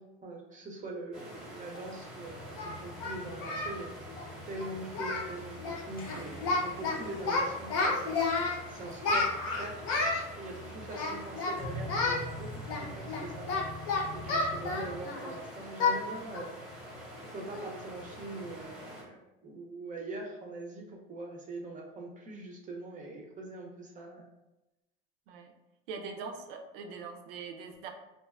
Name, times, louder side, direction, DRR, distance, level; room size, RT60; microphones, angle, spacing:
voice 1, 0.0-3.9 4.5-8.3 8.7-9.8 10.4-13.5 14.1-16.6 17.2-24.3, right 2 dB, 25° right, -1 dB, 0.5 m, -43 dB
sound 1, 1.1-19.0, equal, 5° right, 0.8 m, -47 dB
Singing, 1.8-1.9 2.6-3.8 4.1-4.3 4.6-4.7 4.9-5.3 5.6-5.8 6.1-6.9 7.2-8.6 9.0-10.2 10.9-11.6 11.9-12.2 12.7-15.3 15.8-16.0 16.3-16.5 16.9-17.0 17.5-17.8, left 3 dB, 65° left, 0.7 m, -31 dB
sound 2, 2.2-15.0, left 1 dB, 30° left, 0.7 m, -46 dB
voice 2, 25.9-27.9, right 5 dB, 75° right, 4 dB, 0.4 m, -42 dB
2.6 x 2.1 x 2.3 m, 0.97 s
hypercardioid pair, 95°, 30 cm